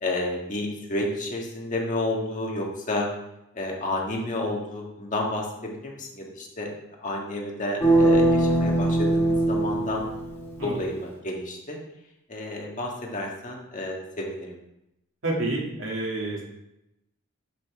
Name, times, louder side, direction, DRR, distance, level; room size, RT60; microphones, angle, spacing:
voice 1, 0.0-3.1 3.5-6.7 7.0-10.1 10.6-11.8 12.3-14.6, left 1 dB, 35° left, -1 dB, 1.6 m, -31 dB
sound 1, 7.8-10.8, right 1 dB, 15° left, 2.1 m, -21 dB
voice 2, 15.2-16.4, right 2 dB, 65° right, -3 dB, 2.4 m, -28 dB
9.8 x 6.8 x 3.6 m, 0.86 s
head